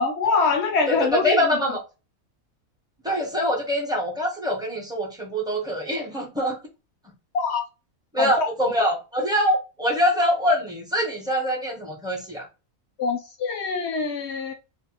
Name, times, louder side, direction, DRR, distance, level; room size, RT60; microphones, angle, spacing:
voice 1, 0.0-1.6 7.3-7.6 8.2-8.5 13.0-14.5, left 4 dB, 65° left, 0.7 m, -24 dB
voice 2, 0.9-1.8 3.0-6.6 8.1-12.5, equal, 5° right, 0.5 m, -24 dB
2.5 x 2.1 x 2.8 m
omnidirectional pair, 1.4 m